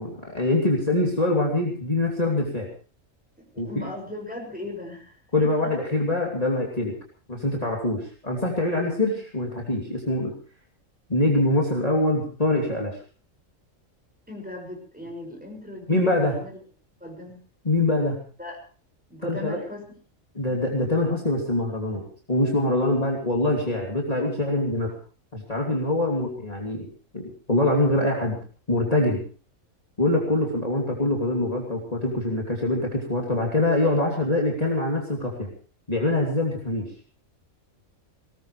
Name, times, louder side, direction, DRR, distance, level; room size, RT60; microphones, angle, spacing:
voice 1, 0.0-2.7 3.6-3.8 5.3-6.9 7.3-10.3 11.1-13.0 15.9-16.4 17.6-18.2 19.2-19.6 20.3-22.0 22.3-24.9 25.3-26.9 27.1-28.4 28.7-29.2 30.0-35.5 35.9-36.9, left 2 dB, 25° left, -2 dB, 3.2 m, -24 dB
voice 2, 3.5-5.5 14.3-16.6 17.0-17.4 18.4-18.6 19.1-19.8 20.3-20.4, left 2 dB, 5° right, 1 dB, 6.6 m, -38 dB
21.5 x 19.0 x 3.4 m, 0.40 s
omnidirectional pair, 1.4 m